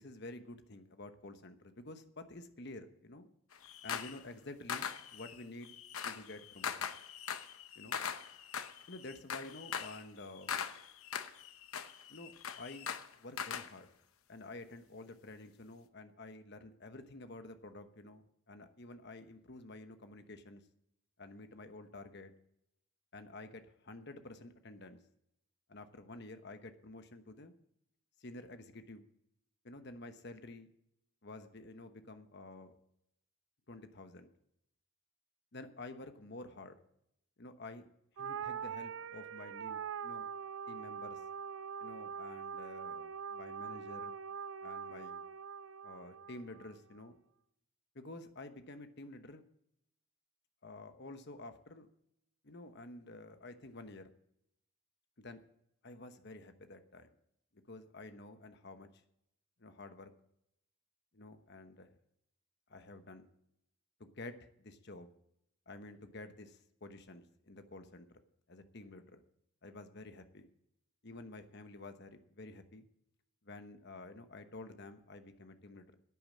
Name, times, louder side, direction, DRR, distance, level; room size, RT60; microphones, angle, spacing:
voice 1, 0.0-3.3 3.8-5.7 6.0-6.9 7.7-8.0 8.9-10.5 12.1-12.9 13.2-13.9 14.3-20.6 21.2-22.3 23.1-25.0 25.7-27.5 28.2-29.1 29.6-30.7 31.2-32.7 33.7-34.3 35.5-36.8 37.4-37.9 38.2-40.3 40.7-41.2 41.8-44.1 44.6-45.2 45.8-47.2 47.9-49.4 50.6-51.9 52.4-54.1 55.2-55.4 55.8-57.1 57.5-58.9 59.6-60.1 61.1-61.9 62.7-63.3 64.0-65.1 65.7-68.1 68.5-69.2 69.6-70.5 71.0-72.9 73.4-75.9, left 2 dB, 50° left, 8 dB, 1.1 m, -50 dB
sound 1, 3.5-4.2 4.7-13.7, left 7 dB, 75° left, 0.9 m, -41 dB
sound 2, 38.2-46.7, right 7 dB, 60° right, 0.4 m, -43 dB
10.5 x 8.8 x 7.4 m, 0.77 s
head